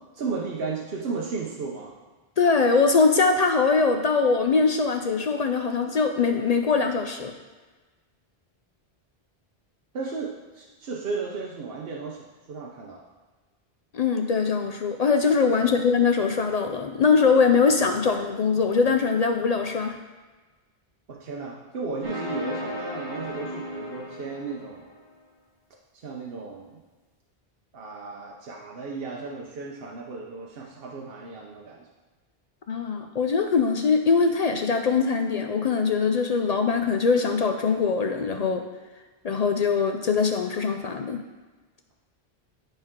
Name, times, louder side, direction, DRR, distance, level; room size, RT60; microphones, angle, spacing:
voice 1, 0.1-1.9 9.9-13.0 15.6-15.8 21.1-24.8 26.0-26.8 27.7-31.9, right 4 dB, 70° right, -2 dB, 1.0 m, -34 dB
voice 2, 2.4-7.3 13.9-20.0 32.7-38.6 39.2-41.2, left 5 dB, 55° left, 5 dB, 0.5 m, -22 dB
sound 1, 22.0-25.0, left 1 dB, 50° right, 1.8 m, -35 dB
10.5 x 4.5 x 3.7 m, 1.3 s
omnidirectional pair, 1.0 m